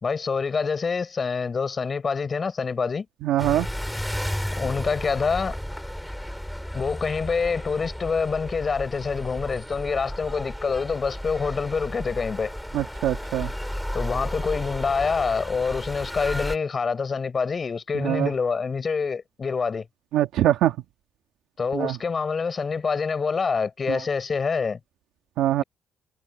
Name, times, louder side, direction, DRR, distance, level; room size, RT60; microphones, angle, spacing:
voice 1, 0.0-3.1 4.6-5.6 6.7-12.5 13.9-19.9 21.6-24.8, left 5 dB, 40° left, 5.3 m, -26 dB
voice 2, 3.2-3.7 12.7-13.5 17.9-18.3 20.1-20.8 21.7-22.0 23.9-24.0 25.4-25.6, right 13 dB, 85° right, 2.0 m, -23 dB
sound 1, 3.4-16.6, equal, ahead, 6.3 m, -33 dB
cardioid pair, 90°, 0 cm